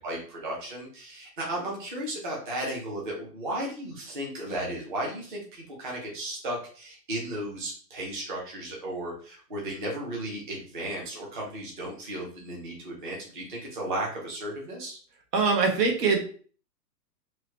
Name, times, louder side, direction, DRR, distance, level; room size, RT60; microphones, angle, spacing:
voice 1, 0.0-15.0, right 1 dB, 35° right, -3 dB, 0.4 m, -35 dB
voice 2, 15.3-16.2, right 4 dB, 75° right, 2 dB, 1.0 m, -22 dB
3.0 x 2.1 x 2.7 m, 0.43 s
hypercardioid pair, 170°, 49 cm